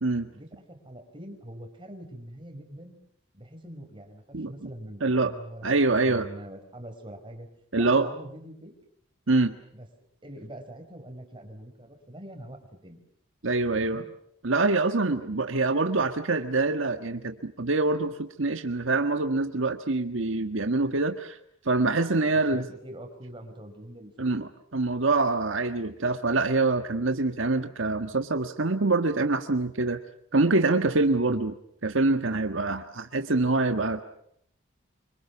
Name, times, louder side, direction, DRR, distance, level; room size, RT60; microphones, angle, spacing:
voice 1, 0.3-3.0 3.3-7.5 7.7-8.7 9.7-9.9 10.2-13.0 13.8-14.1 22.5-24.5 31.3-31.4, right 1 dB, 25° right, 4 dB, 5.3 m, -44 dB
voice 2, 5.0-5.3 5.6-6.3 7.7-8.1 9.3-9.5 13.4-14.0 14.4-21.4 21.6-22.6 24.2-30.0 30.3-31.5 31.8-34.0, right 3 dB, 75° right, 7 dB, 1.5 m, -25 dB
27.0 x 25.5 x 7.2 m, 0.70 s
head